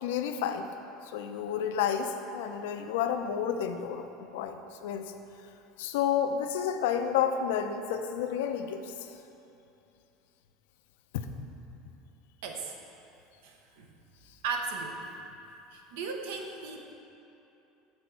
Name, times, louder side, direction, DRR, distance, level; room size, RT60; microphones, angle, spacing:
voice 1, 0.0-0.7 1.0-5.1 5.8-9.2 11.1-11.3, left 8 dB, 85° left, 7 dB, 0.5 m, -31 dB
voice 2, 12.4-12.7 13.4-13.9 14.4-15.1 15.7-16.8, right 4 dB, 75° right, 3 dB, 0.9 m, -36 dB
7.5 x 6.2 x 4.6 m, 2.9 s
cardioid pair, 170°, 0 cm